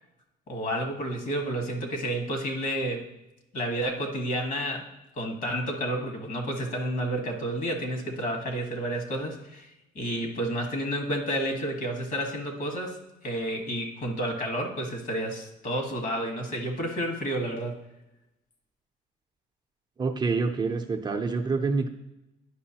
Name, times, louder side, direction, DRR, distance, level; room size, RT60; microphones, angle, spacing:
voice 1, 0.5-3.1 3.5-4.9 5.2-9.7 9.9-17.8, right 1 dB, 55° left, 3 dB, 1.5 m, -30 dB
voice 2, 20.0-21.9, right 4 dB, 25° right, 4 dB, 0.6 m, -27 dB
10.5 x 5.4 x 2.8 m, 0.92 s
cardioid pair, 110°, 17 cm